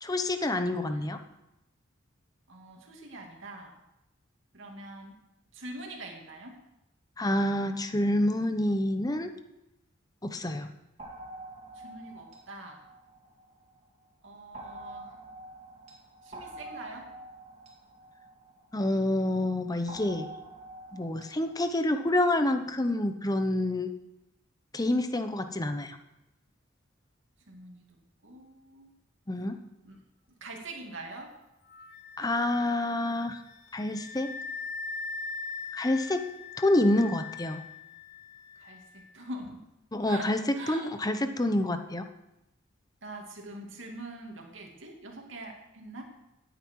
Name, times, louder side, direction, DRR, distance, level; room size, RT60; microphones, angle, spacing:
voice 1, 0.0-1.2 7.2-9.3 10.3-10.7 18.7-20.3 20.9-23.9 24.7-26.0 29.3-29.6 32.2-33.4 33.7-34.3 35.7-36.2 36.6-37.6 39.9-40.4 40.7-42.0, left 1 dB, 20° left, 8 dB, 0.9 m, -27 dB
voice 2, 0.7-1.1 2.5-3.8 4.5-5.2 5.5-6.6 11.7-12.8 14.2-15.1 16.2-17.1 27.5-28.9 29.8-30.0 30.4-31.4 38.6-39.7 40.1-40.9 43.0-46.0, right 2 dB, 70° right, 1 dB, 2.7 m, -44 dB
sound 1, 11.0-13.8 14.5-19.1 19.9-21.7, right 1 dB, 35° right, 2.4 m, -47 dB
Wind instrument woodwind instrument, 31.7-39.1, left 4 dB, 55° left, 1.0 m, -41 dB
17.0 x 9.3 x 4.7 m, 0.91 s
head